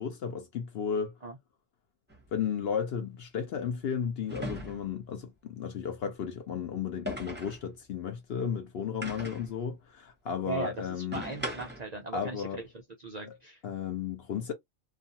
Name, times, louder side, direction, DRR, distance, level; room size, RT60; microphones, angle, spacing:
voice 1, 0.0-1.1 2.3-11.2 12.1-12.6 13.6-14.5, left 7 dB, 65° left, 0.6 m, -34 dB
sound 1, 2.1-2.2 4.3-5.0 7.1-7.6 9.0-9.5 11.1-11.9, equal, 10° right, 0.7 m, -38 dB
voice 2, 10.4-12.7 13.0-13.6, right 3 dB, 60° right, 0.4 m, -38 dB
2.4 x 2.4 x 2.7 m
omnidirectional pair, 1.4 m